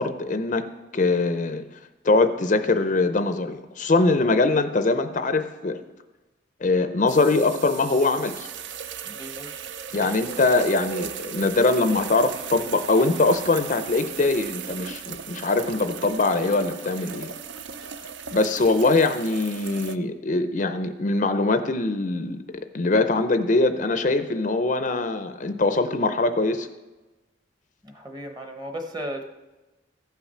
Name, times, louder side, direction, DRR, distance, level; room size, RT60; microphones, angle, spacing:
voice 1, 0.0-1.8 2.0-5.8 6.6-8.5 9.9-17.3 18.3-22.4 22.7-26.7, left 3 dB, 40° left, 9 dB, 0.5 m, -22 dB
sound 1, 7.1-20.0, right 7 dB, 65° right, 0.5 m, -37 dB
voice 2, 9.0-9.5 9.9-10.0 27.8-29.2, equal, 20° right, 5 dB, 0.9 m, -35 dB
15.0 x 5.8 x 5.5 m, 1.1 s
head